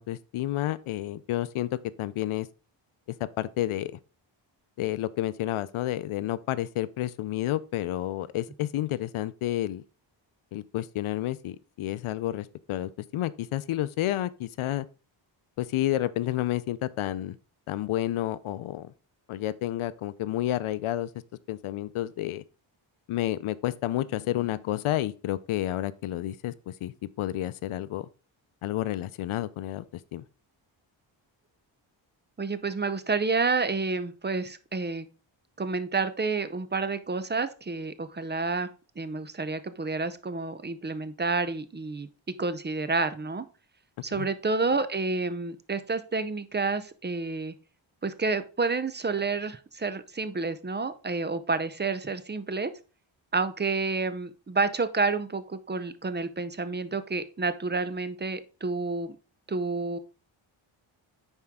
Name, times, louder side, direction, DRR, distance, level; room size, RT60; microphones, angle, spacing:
voice 1, 0.0-2.5 3.2-3.9 4.8-9.8 10.5-14.9 15.6-17.4 17.7-18.9 19.3-21.1 21.5-22.4 23.1-28.1 28.6-30.2 44.1-44.3, left 14 dB, 90° left, 0.6 m, -30 dB
voice 2, 32.4-35.1 35.6-38.7 39.0-42.1 42.4-43.4 44.0-47.5 48.0-52.7 53.3-59.2 59.5-60.0, right 3 dB, 20° right, 0.7 m, -29 dB
9.9 x 4.5 x 3.6 m
wide cardioid pair, 110°, 48 cm